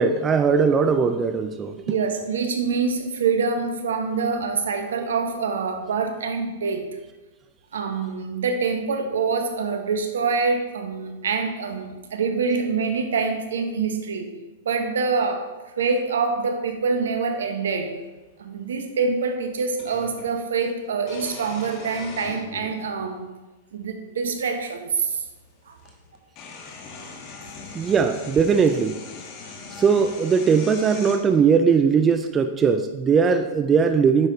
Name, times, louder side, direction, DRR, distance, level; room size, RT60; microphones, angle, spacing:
voice 1, 0.0-1.7 27.7-29.0 29.8-34.3, right 6 dB, 25° right, 8 dB, 0.5 m, -19 dB
voice 2, 1.9-6.9 7.7-14.3 14.6-15.5 15.8-18.0 18.4-23.3 23.7-25.2 25.7-25.8, right 5 dB, 75° right, 6 dB, 1.2 m, -25 dB
sound 1, 18.1-18.2 19.8-20.3 21.0-22.9 23.8-23.9 25.4-25.5 25.8-31.2, left 4 dB, 40° left, 1.5 m, -40 dB
9.7 x 6.4 x 4.1 m, 1.2 s
hypercardioid pair, 110°, 0 cm